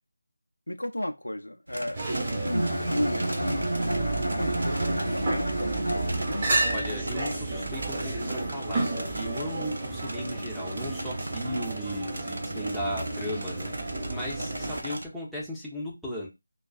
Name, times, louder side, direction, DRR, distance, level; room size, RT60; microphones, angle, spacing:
voice 1, 0.7-6.5 14.4-14.5, left 1 dB, 80° left, 0.5 m, -34 dB
sound 1, 1.7-15.1, right 1 dB, 65° right, 0.6 m, -39 dB
sound 2, 1.9-14.8, right 2 dB, 25° right, 1.0 m, -32 dB
Bowed string instrument, 2.4-6.7, right 1 dB, 85° right, 0.9 m, -30 dB
voice 2, 6.6-16.3, equal, ahead, 0.6 m, -36 dB
2.4 x 2.3 x 2.3 m
figure-of-eight pair, 165°, 0 cm